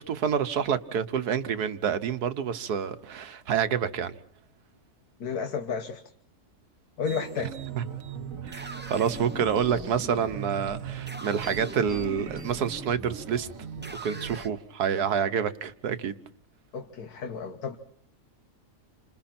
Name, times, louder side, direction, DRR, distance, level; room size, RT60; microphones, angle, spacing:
voice 1, 0.0-4.2 7.8-7.9 8.4-13.5 14.0-16.1, right 7 dB, 80° right, 1.7 m, -28 dB
voice 2, 5.2-6.0 7.0-7.5 16.7-17.8, left 6 dB, 80° left, 1.8 m, -32 dB
sound 1, 7.0-14.5, right 10 dB, 60° right, 1.5 m, -40 dB
sound 2, 8.1-14.5, equal, 10° right, 0.9 m, -42 dB
29.5 x 26.5 x 4.4 m
omnidirectional pair, 1.6 m